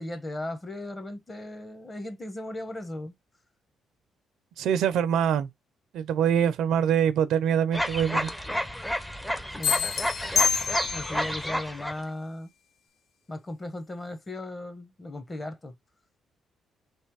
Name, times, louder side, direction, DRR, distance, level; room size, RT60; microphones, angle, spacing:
voice 1, 0.0-3.1 9.6-9.9 10.9-12.5 13.3-15.7, left 1 dB, 25° left, 1.1 m, -37 dB
voice 2, 4.6-5.5 5.9-8.3, right 8 dB, 80° right, 0.5 m, -24 dB
sound 1, 7.7-12.0, equal, 5° left, 0.6 m, -30 dB
sound 2, 9.6-11.3, left 6 dB, 60° left, 0.5 m, -26 dB
3.3 x 2.9 x 4.7 m
cardioid pair, 90°, 0 cm